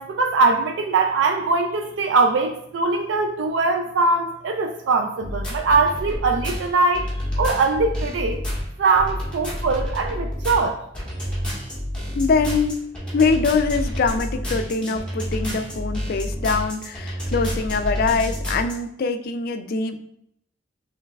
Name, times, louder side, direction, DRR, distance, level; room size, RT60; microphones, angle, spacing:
voice 1, 0.0-7.1 7.4-8.4 8.8-10.8, right 3 dB, 80° right, 4 dB, 0.4 m, -21 dB
sound 1, 5.2-18.7, equal, 5° left, 1.4 m, -29 dB
voice 2, 12.1-12.8 13.1-20.0, left 4 dB, 55° left, 8 dB, 0.4 m, -23 dB
6.6 x 3.2 x 2.3 m, 0.74 s
head